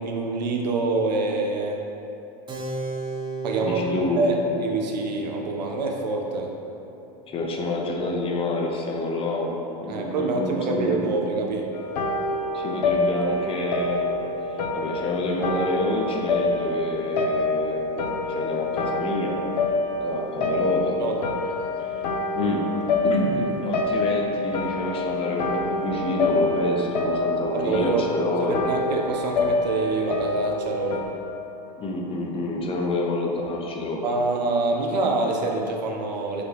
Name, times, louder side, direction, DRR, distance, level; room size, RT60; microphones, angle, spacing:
voice 1, 0.0-1.8 3.4-3.8 4.2-4.4 4.6-6.5 9.9-11.7 21.0-21.3 27.5-28.0 28.4-31.0 34.0-36.4, right 3 dB, 85° right, 1 dB, 0.4 m, -26 dB
Keyboard (musical), 2.5-8.6, right 2 dB, 20° right, 0.5 m, -37 dB
voice 2, 3.6-4.3 7.3-9.5 9.8-11.1 12.5-14.1 14.5-19.4 20.0-20.9 21.6-22.1 22.3-22.6 23.0-28.6 31.8-34.0, left 2 dB, 25° left, 0 dB, 0.5 m, -28 dB
sound 1, 11.7-31.0, left 2 dB, 90° left, 0.4 m, -26 dB
4.9 x 2.2 x 3.2 m, 2.9 s
hypercardioid pair, 95°, 21 cm